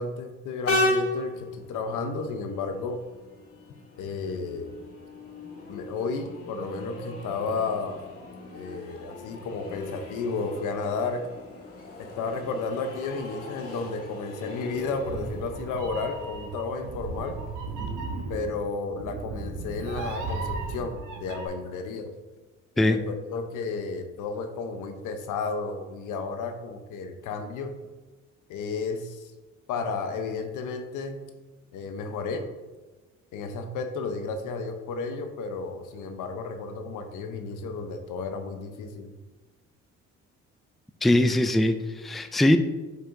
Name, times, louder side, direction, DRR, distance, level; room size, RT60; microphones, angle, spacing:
voice 1, 0.0-3.0 4.0-4.8 5.7-8.1 8.5-11.3 12.0-17.4 18.3-22.1 22.9-27.7 28.5-29.3 29.7-31.2 31.7-32.5 33.3-39.1, left 4 dB, 90° left, 7 dB, 0.8 m, -32 dB
Train, 0.6-17.9, left 1 dB, 50° left, 1.7 m, -36 dB
Meow, 14.8-21.5, right 3 dB, 85° right, 1.0 m, -35 dB
voice 2, 41.0-42.6, left 1 dB, ahead, 9 dB, 0.3 m, -21 dB
7.7 x 5.5 x 2.6 m, 1.2 s
cardioid pair, 90°, 30 cm